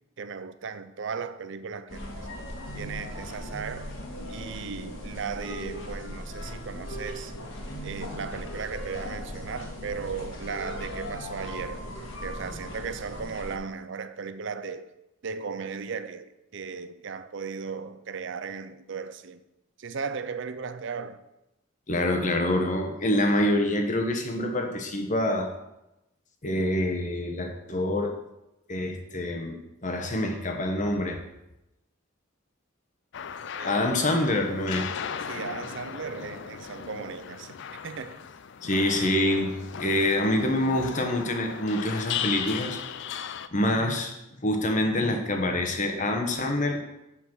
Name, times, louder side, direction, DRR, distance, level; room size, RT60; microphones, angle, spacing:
voice 1, 0.2-2.0 2.7-3.9 4.3-7.4 7.8-11.9 12.2-14.9 15.2-19.4 19.8-21.2 33.6-33.8 34.5-34.6 35.3-38.3, right 5 dB, 65° right, 0.6 m, -36 dB
sound 1, 1.9-13.6, equal, 80° left, 1.9 m, -38 dB
voice 2, 21.9-25.5 26.4-28.2 28.7-31.2 33.6-34.9 38.6-42.8 43.5-46.8, left 1 dB, 40° left, 1.1 m, -26 dB
sound 2, 33.1-43.5, left 8 dB, 60° left, 0.4 m, -37 dB
7.5 x 5.7 x 6.2 m
head